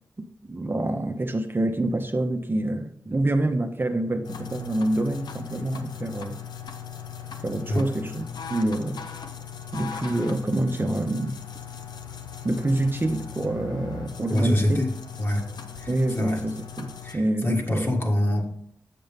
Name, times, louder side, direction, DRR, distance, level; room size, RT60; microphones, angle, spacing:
voice 1, 0.5-6.4 7.4-9.0 9.7-11.4 12.4-14.8 15.9-18.0, right 1 dB, 30° right, 0.7 m, -26 dB
sound 1, 4.2-17.2, left 7 dB, 80° left, 0.7 m, -39 dB
voice 2, 14.3-14.9 15.2-15.5 15.8-16.4 17.0-18.4, left 1 dB, 35° left, 1.6 m, -25 dB
7.5 x 6.6 x 3.5 m
cardioid pair, 40°, 7 cm